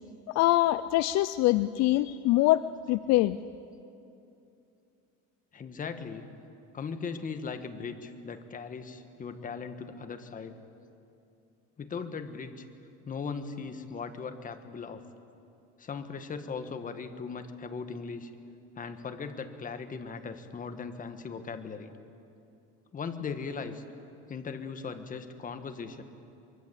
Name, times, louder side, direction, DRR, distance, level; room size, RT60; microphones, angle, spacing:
voice 1, 0.3-2.6 2.9-3.4, left 16 dB, 65° left, 15 dB, 0.6 m, -24 dB
voice 2, 5.5-6.3 6.7-10.6 11.8-12.6 13.0-15.0 15.8-18.3 18.8-21.9 22.9-23.8 24.3-26.0, left 5 dB, 30° left, 8 dB, 1.6 m, -38 dB
24.0 x 23.0 x 8.3 m, 2.7 s
cardioid pair, 135°, 29 cm